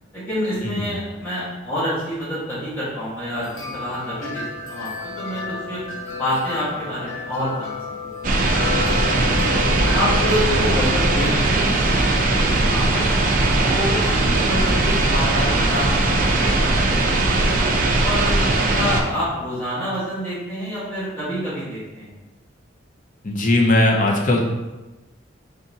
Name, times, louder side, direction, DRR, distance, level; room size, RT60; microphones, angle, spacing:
voice 1, 0.1-3.4 3.7-4.4 4.7-5.8 6.1-8.1 8.8-9.6 9.9-13.3 13.7-14.1 14.4-18.3 18.7-22.1, equal, 10° left, -12 dB, 1.4 m, -28 dB
sound 1, 3.3-11.3, left 5 dB, 90° left, 0.7 m, -32 dB
sound 2, 8.2-19.0, right 2 dB, 45° right, 0.4 m, -19 dB
voice 2, 23.2-24.4, left 1 dB, 40° left, 0 dB, 0.6 m, -19 dB
4.0 x 3.6 x 2.8 m, 1.1 s
head